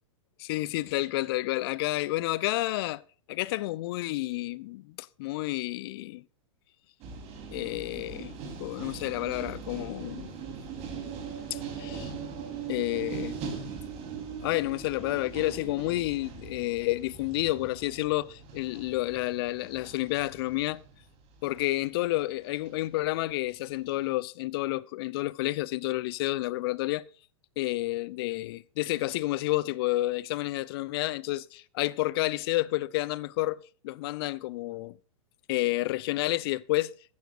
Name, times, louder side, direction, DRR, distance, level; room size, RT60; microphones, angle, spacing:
voice 1, 0.4-3.0 3.3-6.2 7.5-8.3 8.6-10.3 11.5-12.1 12.7-13.4 14.4-20.8 21.4-27.0 27.6-33.6 33.8-35.0 35.5-36.9, left 18 dB, 45° left, 0.7 m, -30 dB
sound 1, 7.0-21.9 22.7-23.0, right 6 dB, 35° right, 3.6 m, -40 dB
15.0 x 11.5 x 2.5 m
figure-of-eight pair, 105°, 17 cm